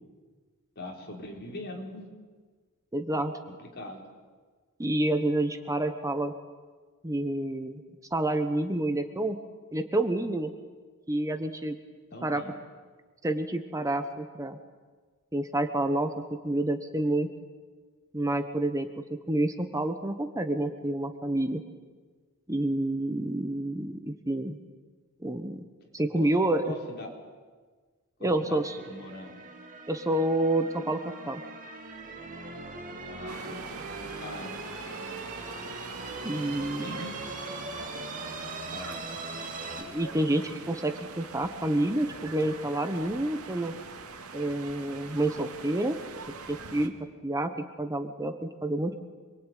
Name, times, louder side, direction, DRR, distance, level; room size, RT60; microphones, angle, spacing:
voice 1, 0.7-2.1 3.1-3.2 3.6-4.0 12.1-12.5 26.1-26.3 26.6-27.1 28.2-29.4 33.1-34.6 36.3-37.4 38.7-39.0, left 1 dB, 50° left, 0 dB, 5.0 m, -42 dB
voice 2, 2.9-3.3 4.8-6.3 7.0-7.8 8.1-9.4 9.7-10.5 11.1-11.8 12.2-12.4 13.2-14.6 15.3-17.3 18.1-21.6 22.5-24.6 25.2-25.6 25.9-26.7 28.2-28.8 29.9-31.4 36.2-37.1 39.8-43.7 44.3-46.0 46.5-46.9 47.2-49.1, right 1 dB, 15° right, 7 dB, 1.2 m, -28 dB
sound 1, 28.6-39.8, right 3 dB, 40° right, 2.9 m, -40 dB
sound 2, 33.3-46.9, right 4 dB, 90° right, 2.3 m, -43 dB
27.0 x 22.5 x 9.3 m, 1.4 s
head